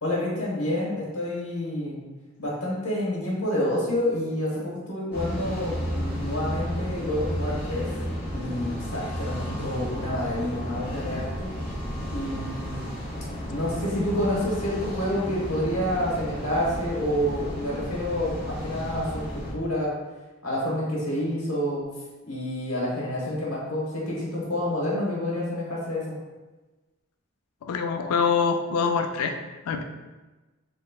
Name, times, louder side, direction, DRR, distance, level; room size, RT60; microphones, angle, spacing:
voice 1, 0.0-2.1 2.4-7.9 8.3-11.5 12.1-12.8 13.5-19.9 20.4-21.8 22.2-26.1, left 1 dB, 70° left, -5 dB, 1.2 m, -28 dB
sound 1, 5.1-19.5, equal, 10° right, 1.4 m, -33 dB
voice 2, 27.6-29.4 29.7-29.8, left 5 dB, 90° left, 6 dB, 0.4 m, -24 dB
4.1 x 3.1 x 2.3 m, 1.2 s
head